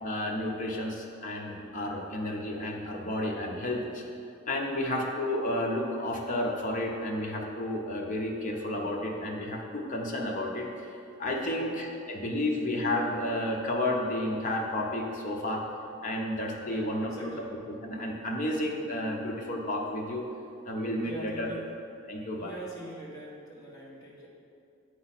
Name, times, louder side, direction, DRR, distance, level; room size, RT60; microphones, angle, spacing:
voice 1, 0.0-4.1 4.5-10.9 11.2-15.6 16.0-17.3 17.8-20.2 20.7-21.5 22.1-22.5, left 1 dB, 40° left, -1 dB, 0.9 m, -31 dB
voice 2, 4.7-5.0 11.4-11.7 16.6-17.5 21.0-21.7 22.4-24.3, right 1 dB, 15° left, -7 dB, 1.5 m, -44 dB
8.8 x 3.1 x 5.7 m, 2.6 s
head